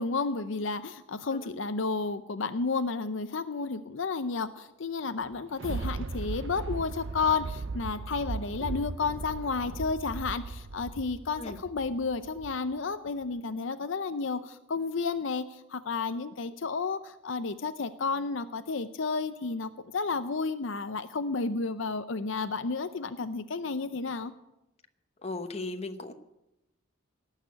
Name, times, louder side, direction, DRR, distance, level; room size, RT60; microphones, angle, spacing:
voice 1, 0.0-24.3, left 4 dB, 65° left, 10 dB, 0.6 m, -32 dB
Thunder, 5.2-12.7 13.2-13.3, right 3 dB, 65° right, 0.7 m, -37 dB
voice 2, 25.2-26.1, left 2 dB, 30° left, 7 dB, 1.0 m, -36 dB
18.0 x 6.6 x 9.4 m, 0.92 s
head